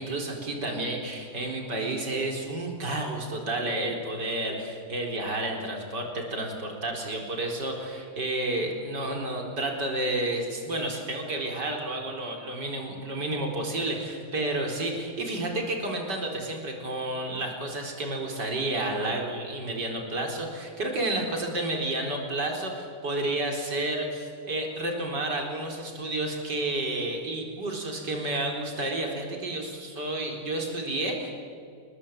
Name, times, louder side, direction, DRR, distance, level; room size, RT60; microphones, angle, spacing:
voice 1, 0.0-31.3, right 1 dB, 75° right, 2 dB, 4.8 m, -31 dB
29.5 x 21.0 x 8.7 m, 2.3 s
omnidirectional pair, 1.9 m